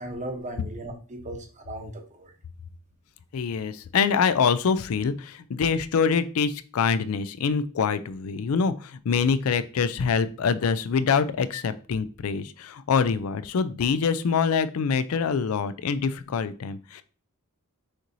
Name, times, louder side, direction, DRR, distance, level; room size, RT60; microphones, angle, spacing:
voice 1, 0.0-2.3, right 1 dB, 35° right, 4 dB, 0.8 m, -37 dB
voice 2, 3.3-17.0, left 6 dB, 85° left, 13 dB, 0.4 m, -25 dB
6.4 x 3.0 x 2.6 m, 0.39 s
head